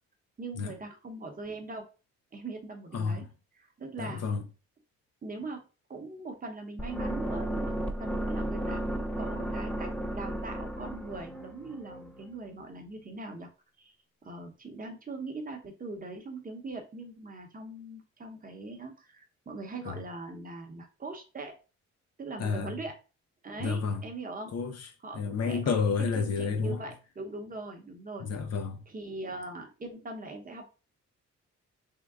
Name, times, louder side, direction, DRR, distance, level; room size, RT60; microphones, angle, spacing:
voice 1, 0.4-1.9 2.3-3.2 3.6-4.2 5.2-5.6 5.9-13.5 13.8-13.9 14.2-21.6 22.2-22.9 23.4-24.5 25.0-28.2 28.9-30.7, right 3 dB, 30° right, 0.9 m, -41 dB
voice 2, 2.9-3.3 4.0-4.4 19.8-20.0 22.4-22.8 23.6-24.0 24.5-26.8 28.2-28.8, left 5 dB, 55° left, 0.8 m, -30 dB
sound 1, 6.8-12.8, right 1 dB, 5° left, 0.4 m, -34 dB
3.7 x 2.2 x 3.5 m
cardioid pair, 90°, 30 cm